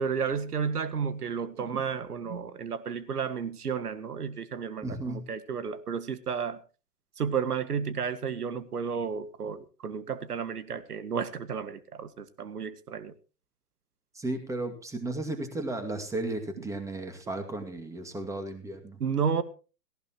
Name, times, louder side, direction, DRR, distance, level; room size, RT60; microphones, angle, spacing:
voice 1, 0.0-6.6 7.2-13.1 16.6-16.7 19.0-19.4, right 6 dB, 75° right, 15 dB, 1.8 m, -32 dB
voice 2, 4.8-5.2 14.1-19.0, right 2 dB, 5° right, 7 dB, 2.2 m, -34 dB
18.0 x 15.5 x 3.0 m, 0.34 s
hypercardioid pair, 130°, 46 cm